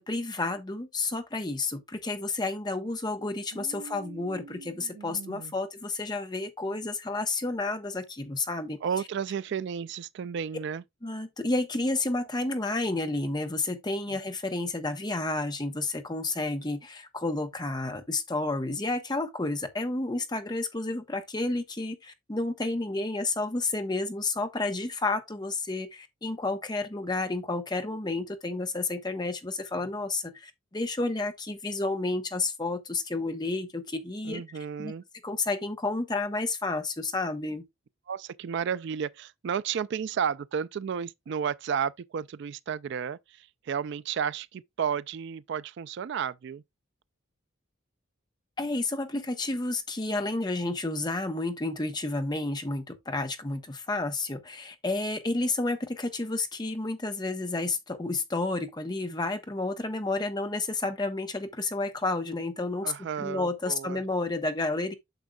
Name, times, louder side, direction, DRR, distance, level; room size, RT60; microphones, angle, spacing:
voice 1, 0.0-8.8 11.0-34.4 34.8-34.9 35.2-37.6 48.6-64.9, left 2 dB, 20° left, 1.0 m, -31 dB
voice 2, 3.5-5.5 8.8-10.8 34.2-35.0 38.1-46.6 62.8-64.0, right 7 dB, 60° right, 0.3 m, -33 dB
9.0 x 6.1 x 2.3 m
head